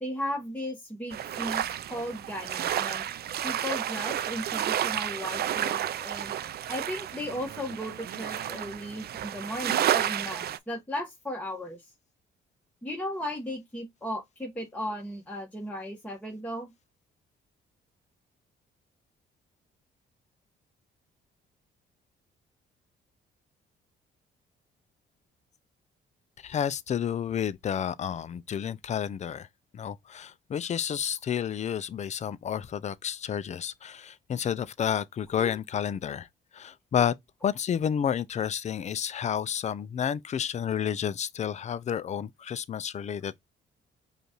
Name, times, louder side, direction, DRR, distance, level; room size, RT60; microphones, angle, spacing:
voice 1, 0.0-1.6 1.9-3.0 3.4-6.3 6.7-11.8 12.8-16.7, equal, 5° left, 1.2 m, -36 dB
sound 1, 1.1-10.6, right 11 dB, 55° right, 0.4 m, -31 dB
voice 2, 26.4-29.5 29.7-36.3 36.5-37.1 37.4-43.4, left 8 dB, 35° left, 0.4 m, -30 dB
5.1 x 2.4 x 2.9 m
cardioid pair, 90°, 20 cm